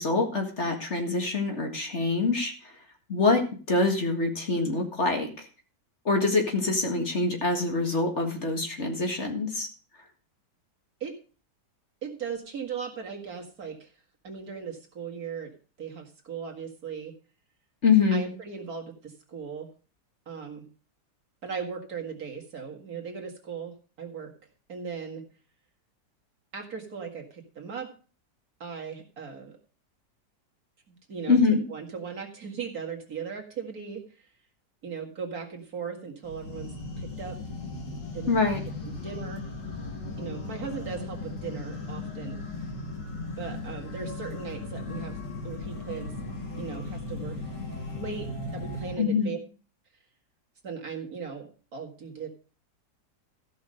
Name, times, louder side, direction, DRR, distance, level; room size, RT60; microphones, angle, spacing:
voice 1, 0.0-2.7 3.1-3.4 3.7-5.3 6.1-9.7 17.8-18.2 31.3-31.6 38.3-38.6 49.0-49.3, left 3 dB, 40° left, 3 dB, 2.1 m, -25 dB
voice 2, 12.0-13.9 14.2-17.1 18.1-19.7 20.3-20.6 21.4-24.3 24.7-25.2 26.5-27.9 28.6-29.6 30.9-31.4 31.7-34.0 34.8-37.4 38.1-38.3 38.8-39.5 40.2-42.4 43.4-46.1 46.6-47.4 48.0-49.4 50.6-52.3, right 6 dB, 55° right, 1 dB, 2.5 m, -38 dB
sound 1, 36.2-49.0, left 2 dB, 80° left, 2.8 m, -37 dB
14.5 x 5.6 x 6.4 m, 0.37 s
omnidirectional pair, 1.8 m